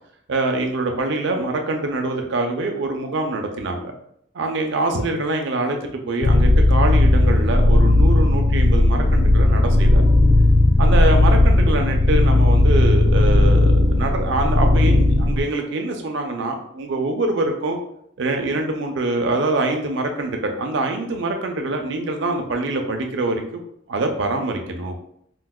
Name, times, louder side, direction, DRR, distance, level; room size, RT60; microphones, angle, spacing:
voice 1, 0.3-3.9 4.3-10.0 10.8-17.8 18.2-23.6 23.9-25.0, right 2 dB, 60° right, 3 dB, 0.5 m, -24 dB
sound 1, 6.2-15.4, left 2 dB, 40° left, 0.4 m, -15 dB
4.5 x 2.0 x 2.2 m, 0.71 s
head